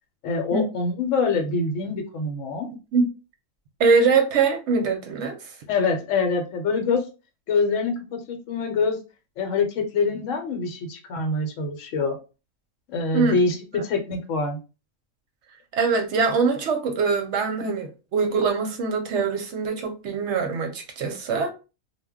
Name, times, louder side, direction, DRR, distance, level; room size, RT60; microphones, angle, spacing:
voice 1, 0.2-2.7 5.7-7.0 7.5-9.0 9.4-12.2 12.9-14.6, left 4 dB, 70° left, 0.9 m, -25 dB
voice 2, 3.8-5.5 13.1-13.4 13.7-13.8 15.7-21.5, right 4 dB, 65° right, 0.8 m, -23 dB
2.2 x 2.1 x 3.5 m
omnidirectional pair, 1.4 m